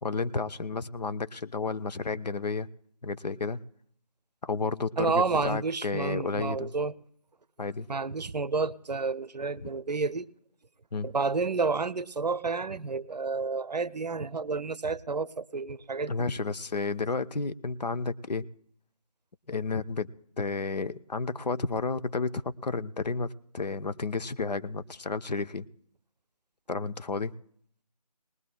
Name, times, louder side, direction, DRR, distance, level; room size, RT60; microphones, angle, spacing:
voice 1, 0.0-2.7 3.0-3.6 4.4-6.7 7.6-7.9 9.6-9.7 10.9-11.1 16.1-18.4 19.5-20.1 20.4-25.7 26.7-27.3, left 4 dB, 80° left, 0.6 m, -31 dB
voice 2, 5.0-6.9 7.9-10.3 11.0-16.3, right 4 dB, 85° right, 0.6 m, -30 dB
22.0 x 19.5 x 2.2 m
figure-of-eight pair, 170°, 21 cm